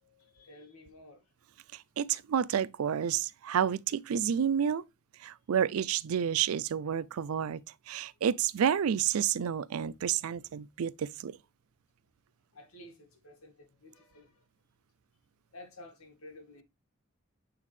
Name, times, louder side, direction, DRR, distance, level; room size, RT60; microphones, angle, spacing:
voice 1, 0.0-1.2 12.5-14.4 15.5-16.6, left 1 dB, 85° left, 1.8 m, -52 dB
voice 2, 1.7-4.8 5.2-11.4, right 8 dB, 85° right, 0.4 m, -30 dB
8.6 x 3.5 x 3.2 m
head